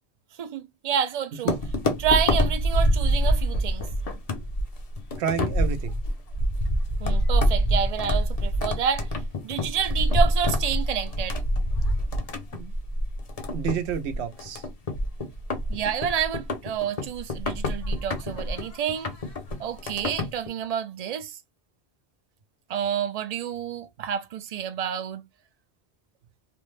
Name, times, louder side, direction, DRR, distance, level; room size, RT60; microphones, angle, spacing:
voice 1, 0.4-1.6 2.0-3.9 7.0-9.1 9.4-11.4 15.7-19.1 19.6-21.4 22.7-25.2, right 8 dB, 55° right, 0.4 m, -29 dB
sound 1, 1.5-20.5, equal, 45° left, 0.6 m, -26 dB
voice 2, 5.2-6.0 12.5-12.7 13.5-14.6, right 7 dB, 90° right, 0.9 m, -29 dB
3.2 x 2.1 x 3.1 m
omnidirectional pair, 1.1 m